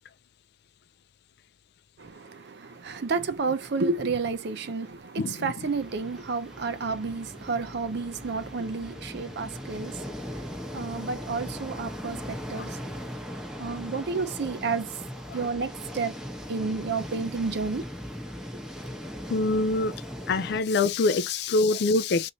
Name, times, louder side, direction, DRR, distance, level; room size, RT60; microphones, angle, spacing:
voice 1, 2.0-13.1 13.6-15.0 15.3-16.2 16.5-17.9, right 4 dB, 55° right, 0.5 m, -31 dB
sound 1, 5.6-20.6, equal, 5° right, 0.9 m, -39 dB
voice 2, 19.3-19.9 20.3-22.3, left 3 dB, 50° left, 0.4 m, -24 dB
2.7 x 2.6 x 4.0 m
head